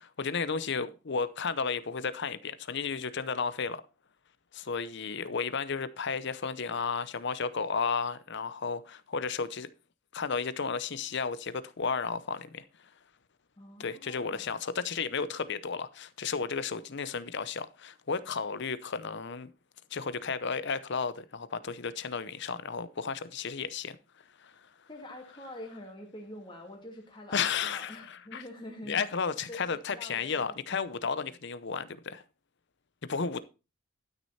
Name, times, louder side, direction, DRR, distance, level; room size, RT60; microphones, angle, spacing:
voice 1, 0.0-3.8 4.5-9.7 10.1-12.9 13.8-19.5 19.9-24.0 24.4-24.7 27.3-28.4 28.9-32.2 33.0-33.4, left 5 dB, 55° left, 0.7 m, -33 dB
voice 2, 13.6-14.5 24.9-31.3, left 1 dB, 20° left, 2.6 m, -46 dB
12.0 x 6.4 x 4.2 m
head